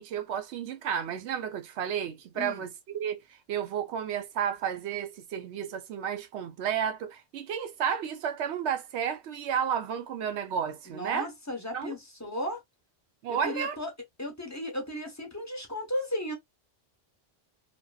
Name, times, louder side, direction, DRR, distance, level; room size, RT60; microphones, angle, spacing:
voice 1, 0.0-3.2 3.5-11.3 11.7-11.9 13.2-13.8, right 8 dB, 90° right, 0.9 m, -32 dB
voice 2, 2.3-2.7 10.9-12.6 13.3-13.9 14.2-16.4, left 1 dB, 20° left, 0.7 m, -35 dB
2.6 x 2.4 x 2.3 m
omnidirectional pair, 1.1 m